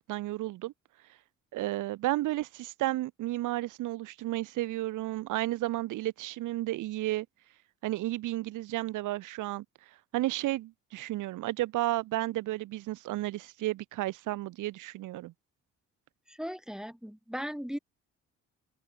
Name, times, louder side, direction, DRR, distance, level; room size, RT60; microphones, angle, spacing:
voice 1, 0.1-0.7 1.5-7.3 7.8-9.6 10.1-15.3, right 16 dB, 80° right, 1.0 m, -32 dB
voice 2, 16.3-17.8, equal, ahead, 3.3 m, -37 dB
open air
cardioid pair, 90°, 30 cm